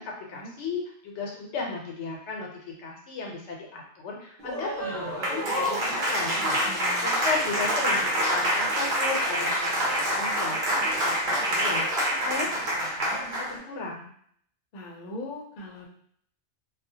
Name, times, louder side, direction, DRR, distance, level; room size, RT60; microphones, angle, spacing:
voice 1, 0.0-6.4 7.0-10.6 11.0-14.1, left 4 dB, 85° left, -1 dB, 1.0 m, -36 dB
Applause, 4.4-13.6, equal, 55° right, 0.8 m, -26 dB
voice 2, 6.7-7.1 14.7-15.9, left 2 dB, 55° left, -2 dB, 0.7 m, -40 dB
2.4 x 2.0 x 2.7 m, 0.63 s
omnidirectional pair, 1.2 m